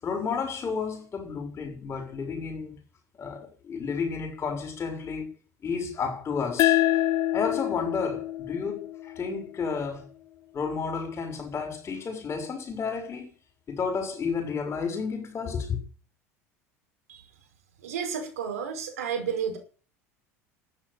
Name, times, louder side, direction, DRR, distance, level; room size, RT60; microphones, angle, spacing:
voice 1, 0.0-2.8 3.2-5.3 5.6-6.8 7.3-10.1 10.5-13.3 13.7-15.8, left 5 dB, 35° left, 6.9 m, -31 dB
sound 1, 6.6-9.8, left 14 dB, 50° left, 1.0 m, -26 dB
voice 2, 17.8-19.6, right 7 dB, 75° right, 5.4 m, -31 dB
12.5 x 10.0 x 9.3 m
figure-of-eight pair, 75°, 8 cm